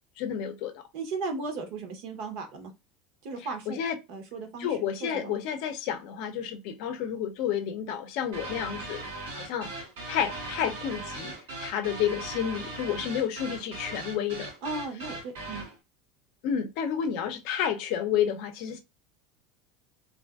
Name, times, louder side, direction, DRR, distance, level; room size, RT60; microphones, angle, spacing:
voice 1, 0.2-0.8 3.7-4.0 4.6-9.0 9.3-9.7 10.1-11.3 11.6-14.5 16.4-18.8, left 9 dB, 60° left, 0.6 m, -30 dB
voice 2, 0.9-2.7 3.2-3.8 4.1-5.4 14.6-15.7, right 3 dB, 60° right, 0.9 m, -36 dB
sound 1, 8.3-15.8, right 2 dB, 90° right, 1.1 m, -39 dB
2.5 x 2.5 x 2.3 m
supercardioid pair, 155°, 0 cm